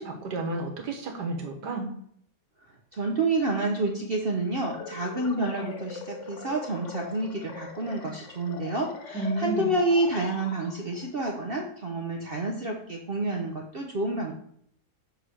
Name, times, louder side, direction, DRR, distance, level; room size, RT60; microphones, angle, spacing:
voice 1, 0.0-1.9 9.1-9.8, right 2 dB, 80° right, 3 dB, 1.9 m, -31 dB
voice 2, 2.9-14.3, right 2 dB, 50° right, 1 dB, 0.8 m, -29 dB
sound 1, 4.6-11.1, left 5 dB, 55° left, 1.1 m, -42 dB
6.8 x 3.4 x 6.2 m, 0.68 s
omnidirectional pair, 1.8 m